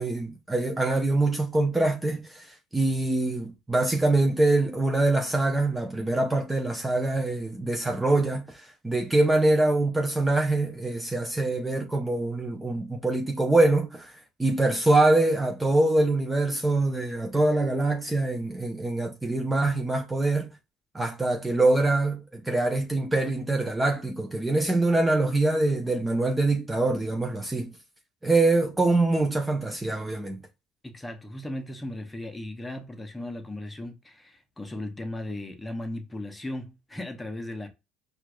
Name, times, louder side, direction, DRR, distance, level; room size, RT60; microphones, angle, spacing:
voice 1, 0.0-20.5 20.9-27.7 28.2-30.4, right 2 dB, 10° right, 0.6 m, -24 dB
voice 2, 30.8-37.7, left 1 dB, 10° left, 0.8 m, -36 dB
4.5 x 2.4 x 2.2 m
supercardioid pair, 100°, 0 cm